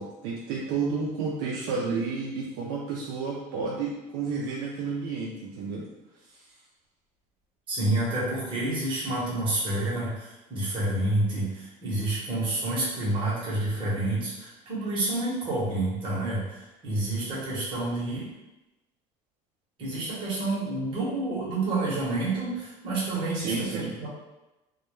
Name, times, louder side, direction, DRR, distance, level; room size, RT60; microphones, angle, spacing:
voice 1, 0.0-5.9 6.3-6.4 23.3-23.9, right 4 dB, 75° right, -4 dB, 0.4 m, -31 dB
voice 2, 7.7-18.3 19.8-24.1, right 2 dB, 35° right, -7 dB, 0.9 m, -29 dB
2.2 x 2.1 x 3.0 m, 1.0 s
cardioid pair, 140°, 15 cm